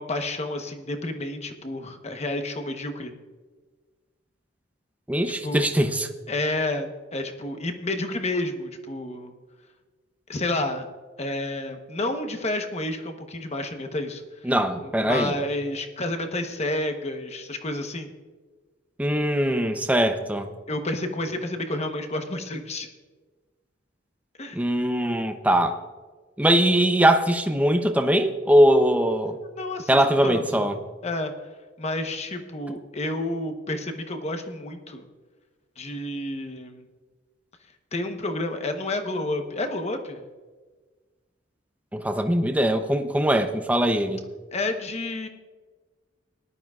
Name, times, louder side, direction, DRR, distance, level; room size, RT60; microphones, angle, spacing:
voice 1, 0.0-3.1 5.4-5.6 6.3-9.3 10.3-10.9 11.2-14.2 14.8-18.1 20.7-22.9 24.4-24.6 29.4-30.7 31.0-31.3 31.8-35.0 35.8-36.8 37.9-40.2 44.5-45.3, left 2 dB, 35° left, 6 dB, 1.0 m, -30 dB
voice 2, 5.1-6.1 14.4-15.4 19.0-20.5 24.5-25.7 26.4-29.4 29.9-30.8 41.9-44.2, right 1 dB, 10° right, 7 dB, 0.7 m, -21 dB
19.0 x 11.5 x 2.4 m, 1.4 s
head